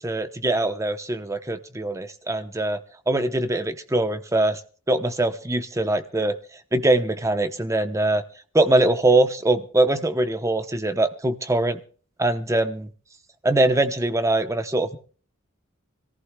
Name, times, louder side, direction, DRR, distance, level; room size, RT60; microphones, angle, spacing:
voice 1, 0.0-2.8 3.1-4.6 4.9-6.4 6.7-8.2 8.5-11.8 12.2-12.9 13.4-15.0, right 2 dB, 15° right, 9 dB, 0.9 m, -22 dB
25.5 x 15.0 x 2.3 m, 0.41 s
head